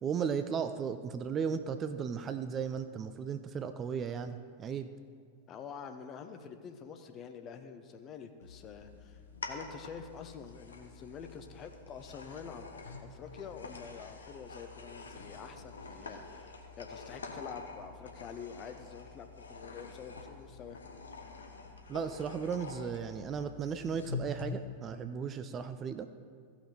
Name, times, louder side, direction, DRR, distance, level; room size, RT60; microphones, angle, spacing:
voice 1, 0.0-4.9 21.9-26.1, right 6 dB, 25° right, 10 dB, 0.4 m, -35 dB
voice 2, 5.5-9.2 9.5-12.7 13.0-20.8, left 6 dB, 30° left, 7 dB, 0.8 m, -47 dB
sound 1, 8.4-24.5, left 3 dB, 70° left, 1.0 m, -47 dB
15.5 x 5.8 x 4.4 m, 2.1 s
figure-of-eight pair, 90°, 0 cm